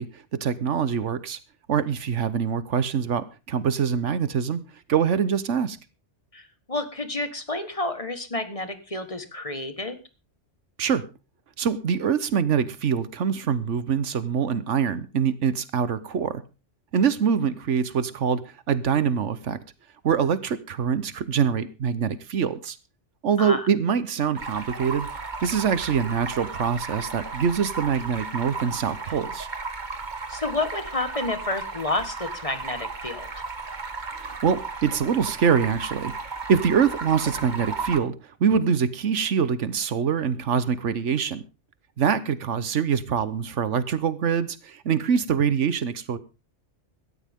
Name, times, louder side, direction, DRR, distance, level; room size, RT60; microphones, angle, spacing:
voice 1, 0.0-1.4 1.7-4.6 4.9-5.8 10.8-11.0 11.6-16.4 16.9-19.6 20.0-22.8 23.2-25.1 25.4-29.5 34.2-36.1 36.5-38.1 38.4-41.4 42.0-46.2, right 7 dB, 80° right, 15 dB, 1.3 m, -24 dB
voice 2, 6.7-10.0 23.4-23.7 30.3-33.3, left 2 dB, 30° left, 9 dB, 1.6 m, -30 dB
Stream, 24.4-38.0, right 4 dB, 40° right, 1.6 m, -35 dB
17.0 x 13.5 x 3.6 m, 0.31 s
omnidirectional pair, 1.2 m